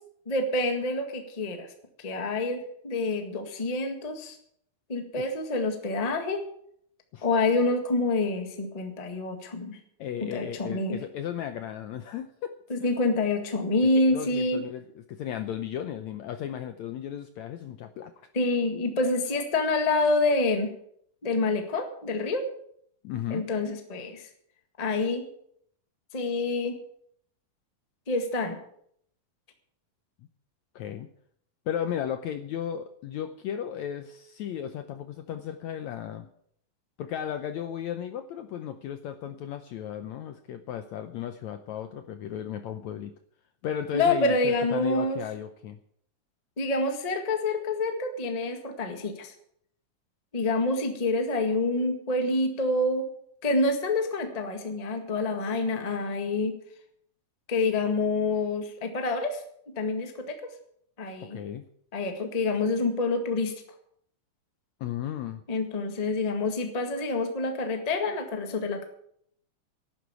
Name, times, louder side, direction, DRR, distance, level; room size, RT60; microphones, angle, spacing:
voice 1, 0.2-1.7 2.0-4.4 4.9-6.4 7.2-9.8 10.2-11.0 12.7-14.6 18.3-20.7 21.2-22.4 23.3-24.3 24.8-25.3 26.1-26.8 28.1-28.6 43.9-45.2 46.6-49.3 50.3-53.0 53.4-56.5 57.5-60.4 61.0-61.4 61.9-63.5 65.5-68.8, left 2 dB, 25° left, 5 dB, 0.8 m, -27 dB
voice 2, 10.0-12.5 12.8-13.2 13.9-18.1 23.0-23.4 30.7-31.1 31.7-36.3 37.0-43.1 43.6-45.8 61.3-61.6 64.8-65.4, left 9 dB, 75° left, 8 dB, 1.7 m, -35 dB
11.5 x 9.4 x 8.2 m, 0.68 s
omnidirectional pair, 4.0 m